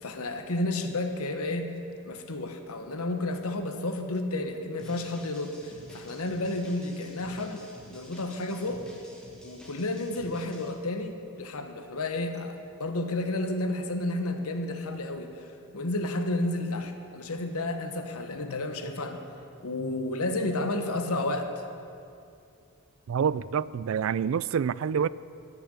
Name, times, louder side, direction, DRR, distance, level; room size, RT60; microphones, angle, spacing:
voice 1, 0.0-1.7 2.0-8.8 9.4-15.3 15.7-19.2 19.6-21.5, left 2 dB, 80° left, 1.2 m, -31 dB
sound 1, 4.8-10.7, equal, 5° left, 2.0 m, -50 dB
voice 2, 23.1-25.1, right 7 dB, 65° right, 0.3 m, -27 dB
14.5 x 6.9 x 9.9 m
head